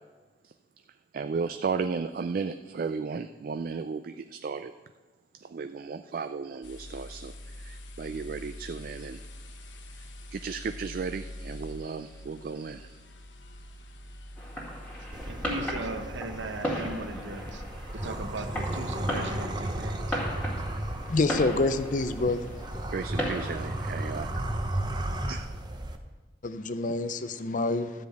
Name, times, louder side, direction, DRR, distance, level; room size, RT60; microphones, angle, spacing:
voice 1, 1.1-4.7 5.4-7.3 7.6-9.2 10.0-13.0 22.9-24.4 25.3-25.4, right 5 dB, 50° right, 9 dB, 0.3 m, -34 dB
sound 1, 6.6-15.3, left 1 dB, 75° left, 1.0 m, -44 dB
Fireworks, 14.4-24.4, equal, 5° left, 2.0 m, -37 dB
sound 2, 15.1-26.0, right 1 dB, 25° right, 0.7 m, -34 dB
voice 2, 15.3-17.6 17.9-20.2, right 2 dB, 80° right, 7 dB, 0.9 m, -38 dB
voice 3, 21.1-22.6 26.4-28.1, left 2 dB, 45° left, 12 dB, 0.5 m, -27 dB
13.0 x 5.1 x 7.9 m, 1.3 s
head